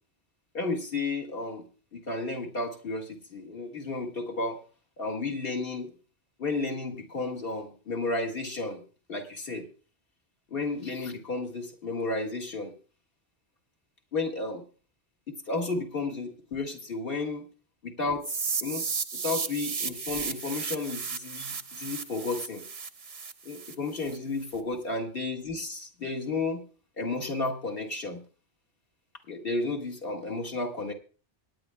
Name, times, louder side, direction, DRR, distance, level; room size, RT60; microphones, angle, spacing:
voice 1, 0.5-1.6 1.9-4.6 5.0-5.9 6.4-8.8 9.1-9.7 10.5-12.7 14.1-14.6 15.3-17.4 17.8-18.8 19.2-22.6 23.4-26.6 27.0-28.2 29.3-30.9, left 3 dB, 55° left, 0 dB, 1.8 m, -32 dB
sound 1, 18.2-24.2, right 5 dB, 40° right, 0.6 m, -34 dB
25.0 x 9.5 x 2.2 m, 0.37 s
omnidirectional pair, 1.2 m